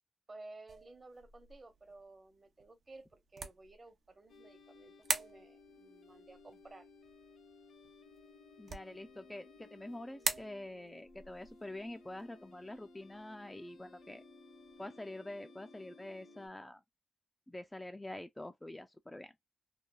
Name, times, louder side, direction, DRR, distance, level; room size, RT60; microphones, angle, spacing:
voice 1, 0.3-6.9, right 2 dB, 35° right, 0.9 m, -55 dB
sound 1, 0.7-14.8, right 5 dB, 65° right, 0.6 m, -45 dB
sound 2, 4.3-16.5, left 3 dB, 85° left, 0.8 m, -59 dB
voice 2, 8.6-14.2 14.8-16.8 17.5-19.3, left 1 dB, 10° left, 0.3 m, -46 dB
3.2 x 2.2 x 2.2 m
cardioid pair, 105°, 0 cm